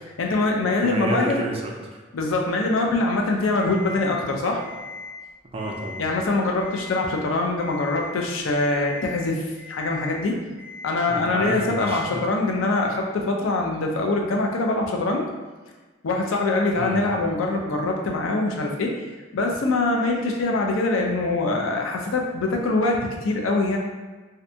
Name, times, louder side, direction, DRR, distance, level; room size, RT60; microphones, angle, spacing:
voice 1, 0.2-1.4 2.1-4.6 6.0-10.4 10.8-15.2 16.0-18.9 19.3-23.8, left 2 dB, 90° left, 1 dB, 0.4 m, -23 dB
voice 2, 0.8-2.0 5.5-6.0 11.1-12.2 16.8-17.0, right 1 dB, 30° right, 0 dB, 0.3 m, -30 dB
Alarm, 3.6-4.1 4.6-5.1 5.5-6.1 6.6-7.1 7.6-8.1 8.6-9.1 9.6-10.1 10.6-11.1 11.6-12.1, left 4 dB, 55° left, 1.4 m, -39 dB
2.6 x 2.2 x 2.6 m, 1.3 s
head